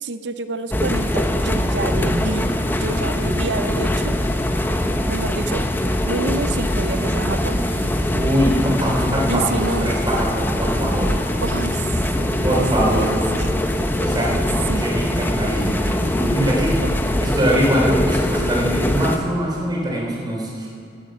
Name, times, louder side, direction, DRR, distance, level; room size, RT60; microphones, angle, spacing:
voice 1, 0.0-4.2 5.1-5.7 6.0-7.8 9.3-10.0 11.4-11.9 12.2-13.6 14.2-14.4 14.7-14.9 16.8-16.9, right 3 dB, 65° right, 10 dB, 0.6 m, -28 dB
sound 1, 0.7-19.2, left 1 dB, 10° left, 0.7 m, -22 dB
voice 2, 8.1-11.2 12.4-13.1 14.0-14.3 14.8-16.8 17.2-20.7, equal, 25° right, -3 dB, 3.5 m, -22 dB
14.5 x 8.9 x 7.7 m, 2.4 s
head